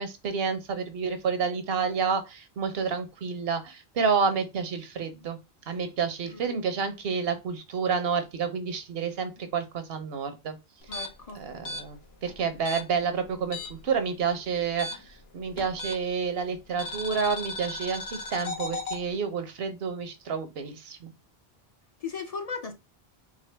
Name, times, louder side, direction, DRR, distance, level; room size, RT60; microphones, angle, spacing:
voice 1, 0.0-5.4 5.7-10.6 11.3-21.1, right 5 dB, 75° right, 1.0 m, -29 dB
sound 1, 10.8-13.9 14.2-16.2 16.8-19.0, left 2 dB, 80° left, 1.2 m, -36 dB
voice 2, 10.9-11.4 22.0-22.7, left 5 dB, 45° left, 0.6 m, -36 dB
3.7 x 3.5 x 3.3 m
omnidirectional pair, 1.0 m